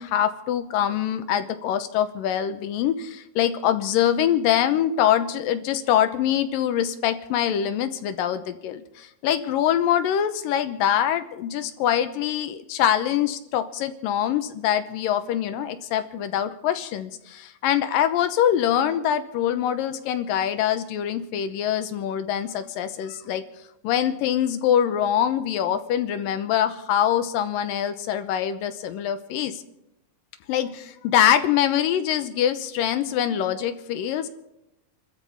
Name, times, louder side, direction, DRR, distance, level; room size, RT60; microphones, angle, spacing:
voice 1, 0.0-23.4 23.8-29.6 30.5-34.3, left 10 dB, 80° left, 10 dB, 2.6 m, -24 dB
29.5 x 13.5 x 3.5 m, 0.86 s
omnidirectional pair, 4.0 m